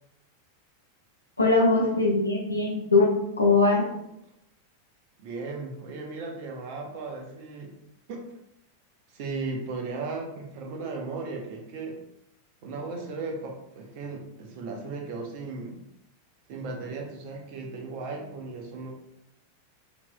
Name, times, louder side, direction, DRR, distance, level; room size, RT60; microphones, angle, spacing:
voice 1, 1.4-4.0, left 3 dB, 85° left, -3 dB, 1.1 m, -22 dB
voice 2, 5.2-7.7 8.1-8.2 9.1-12.0 12.6-15.8 16.5-18.9, right 3 dB, 45° right, 1 dB, 0.9 m, -36 dB
5.8 x 2.9 x 2.3 m, 0.81 s
figure-of-eight pair, 90°, 0 cm